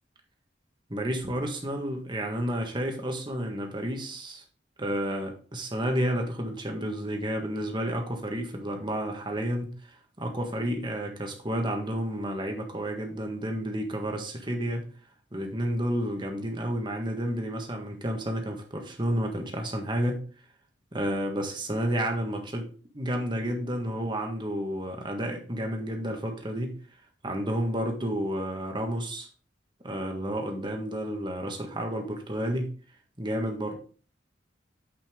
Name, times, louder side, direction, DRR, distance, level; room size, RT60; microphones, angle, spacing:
voice 1, 0.9-4.4 4.8-9.7 10.2-14.9 15.3-20.2 20.9-22.7 22.9-26.8 27.2-29.3 29.8-32.7 33.2-33.7, equal, 25° right, 3 dB, 1.7 m, -31 dB
8.9 x 5.7 x 3.8 m, 0.39 s
head